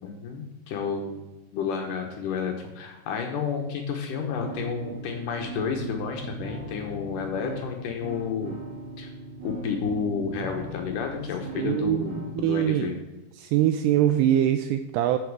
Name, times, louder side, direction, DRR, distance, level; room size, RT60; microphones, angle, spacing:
voice 1, 0.0-1.2 1.5-8.6 9.0-9.1 9.4-13.0, left 6 dB, 75° left, 3 dB, 2.0 m, -31 dB
sound 1, 4.4-12.4, right 2 dB, 60° right, 3.6 m, -39 dB
voice 2, 11.5-12.9 13.4-15.2, right 11 dB, 85° right, 9 dB, 2.4 m, -23 dB
13.5 x 6.3 x 4.7 m, 1.0 s
omnidirectional pair, 5.0 m